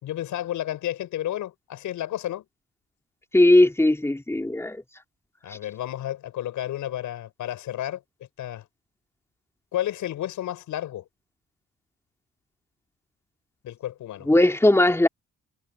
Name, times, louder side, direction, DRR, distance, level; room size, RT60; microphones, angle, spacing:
voice 1, 0.0-2.4 5.4-8.0 8.4-8.7 9.7-11.1 13.6-14.3, left 12 dB, 80° left, 6.7 m, -31 dB
voice 2, 3.3-4.8 14.3-15.1, left 1 dB, 10° left, 3.1 m, -18 dB
cardioid pair, 90°, 30 cm